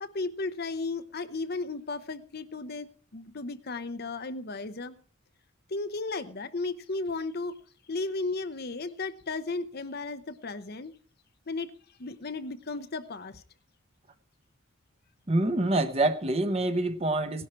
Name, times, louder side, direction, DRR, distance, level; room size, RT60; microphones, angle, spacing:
voice 1, 0.0-5.0 5.7-7.6 7.9-10.9 11.5-11.7 12.0-13.4 17.3-17.5, left 3 dB, 50° left, 11 dB, 0.8 m, -35 dB
voice 2, 15.3-17.5, right 2 dB, 30° right, 10 dB, 1.0 m, -26 dB
17.0 x 11.5 x 4.5 m, 0.42 s
head